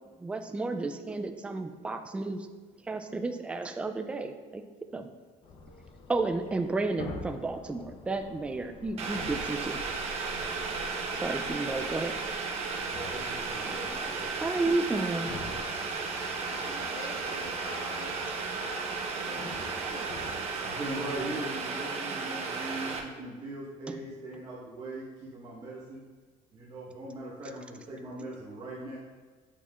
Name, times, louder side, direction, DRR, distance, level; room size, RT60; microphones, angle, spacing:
voice 1, 0.2-2.5 2.9-4.6 4.9-5.1 6.1-9.8 11.2-12.2 14.3-15.3 23.9-24.0, right 3 dB, 10° right, 7 dB, 0.3 m, -32 dB
sound 1, 5.4-21.4, left 3 dB, 40° left, 0.7 m, -47 dB
Boiling, 9.0-23.0, right 4 dB, 45° right, 0.8 m, -34 dB
voice 2, 12.9-14.6 20.6-26.0 26.5-29.0, right 1 dB, 30° right, -6 dB, 1.1 m, -40 dB
voice 3, 16.5-18.2 18.5-20.3, left 2 dB, 60° left, -2 dB, 1.6 m, -45 dB
8.5 x 5.4 x 2.4 m, 1.4 s
cardioid pair, 145°, 14 cm